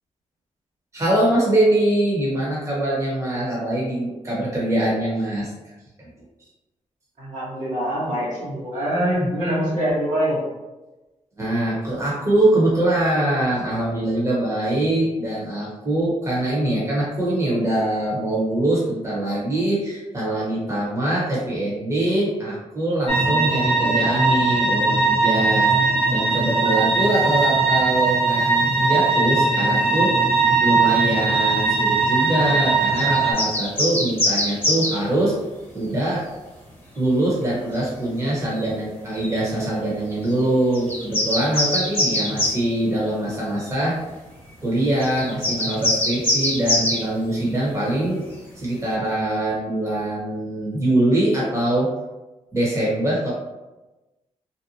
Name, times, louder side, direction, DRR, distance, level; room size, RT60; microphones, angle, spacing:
voice 1, 0.9-5.5 11.4-30.1 30.6-35.3 35.7-36.3 37.0-44.0 44.6-48.2 48.5-51.9 52.5-53.3, right 1 dB, 20° right, -6 dB, 1.1 m, -23 dB
voice 2, 7.2-10.4 23.8-24.0 42.2-42.4, equal, 70° right, -8 dB, 1.5 m, -24 dB
sound 1, 23.1-33.3, right 3 dB, 50° right, 0.8 m, -20 dB
sound 2, 33.0-35.0 37.7-37.9 38.5-38.7 39.1-39.3 40.2-40.4 40.7-42.6 43.7-43.8 45.0-47.0, left 1 dB, 15° left, 1.1 m, -23 dB
2.7 x 2.2 x 2.7 m, 1.1 s
cardioid pair, 60°, 13 cm